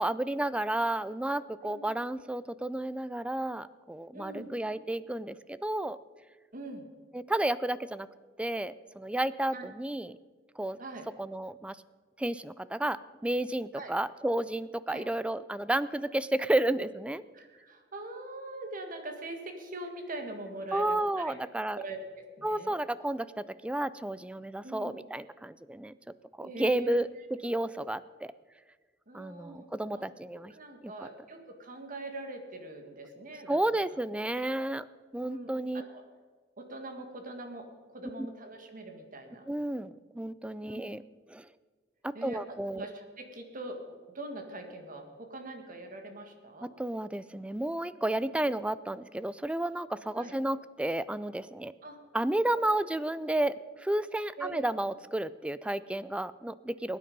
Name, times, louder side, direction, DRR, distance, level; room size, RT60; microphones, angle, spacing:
voice 1, 0.0-6.0 7.1-8.1 8.4-10.2 10.6-10.8 11.2-11.8 12.2-17.2 20.7-21.8 22.4-25.9 26.4-28.3 29.1-30.5 30.8-31.1 33.5-34.9 35.1-35.8 39.5-41.0 41.3-41.5 42.0-42.8 46.6-51.7 52.1-57.0, right 1 dB, 5° right, 17 dB, 0.3 m, -32 dB
voice 2, 4.1-4.5 6.5-6.8 9.5-9.6 10.8-11.1 13.8-13.9 14.9-15.1 17.3-22.0 22.4-22.8 24.6-25.0 26.4-27.0 29.1-29.7 30.0-30.1 30.5-33.6 34.4-34.7 35.2-36.0 36.6-39.5 40.6-40.8 42.1-42.4 42.7-43.8 44.1-46.7 50.2-50.3 51.8-52.0 52.6-52.7 54.4-54.7, right 2 dB, 45° right, 5 dB, 1.8 m, -42 dB
21.0 x 9.4 x 5.3 m, 1.5 s
head